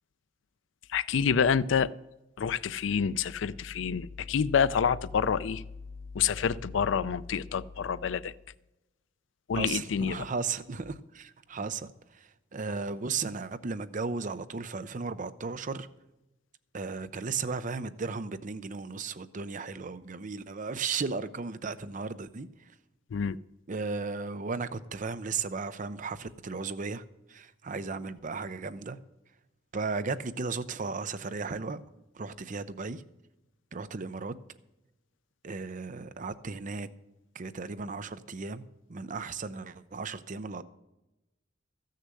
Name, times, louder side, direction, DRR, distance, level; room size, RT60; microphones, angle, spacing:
voice 1, 0.9-1.9 2.4-5.6 6.1-8.3 9.5-10.2 23.1-23.4, left 7 dB, 75° left, 0.4 m, -27 dB
voice 2, 9.5-15.9 16.7-22.7 23.7-29.0 29.7-31.8 32.1-33.0 33.7-34.3 35.4-36.9 37.3-38.6 38.9-40.6, right 4 dB, 40° right, 0.6 m, -35 dB
14.0 x 6.6 x 7.6 m
head